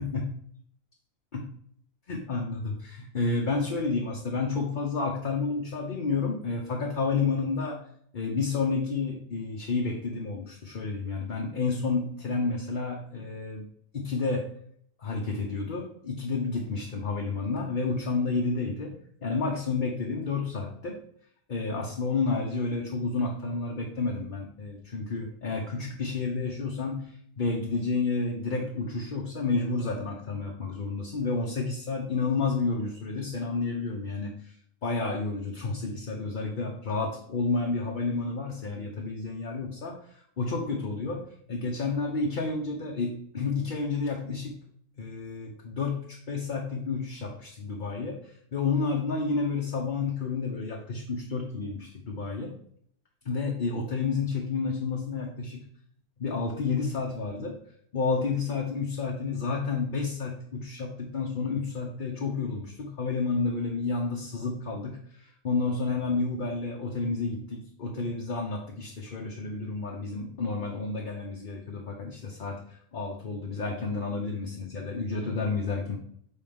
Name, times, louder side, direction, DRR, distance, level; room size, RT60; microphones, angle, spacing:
voice 1, 2.1-7.8 8.1-13.7 13.9-14.5 15.0-21.0 21.5-34.5 34.8-40.0 40.4-44.6 45.0-52.5 53.2-55.6 56.2-57.6 57.9-72.6 72.9-76.0, left 4 dB, 40° left, -1 dB, 0.8 m, -30 dB
7.2 x 4.3 x 3.6 m, 0.65 s
omnidirectional pair, 1.5 m